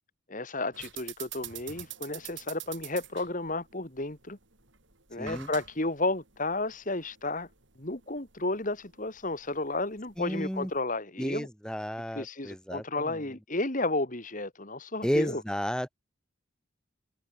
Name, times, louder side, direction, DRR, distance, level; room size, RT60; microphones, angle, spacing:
voice 1, 0.3-4.4 5.1-7.5 7.8-11.5 12.1-15.4, left 2 dB, 40° left, 2.7 m, -32 dB
sound 1, 0.7-10.8, right 11 dB, 65° right, 5.4 m, -47 dB
voice 2, 5.2-5.5 10.2-10.7 11.2-13.2 15.0-16.0, equal, 5° left, 3.5 m, -32 dB
head